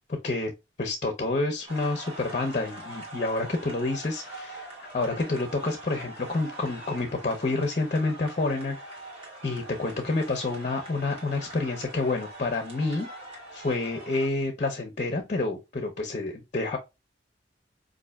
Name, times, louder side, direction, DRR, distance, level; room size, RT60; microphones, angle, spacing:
voice 1, 0.1-0.5 0.8-8.8 9.4-13.1 13.5-16.8, left 3 dB, 40° left, 0.6 m, -28 dB
sound 1, 1.7-14.3, right 2 dB, 35° right, 1.4 m, -43 dB
5.2 x 2.5 x 2.3 m
head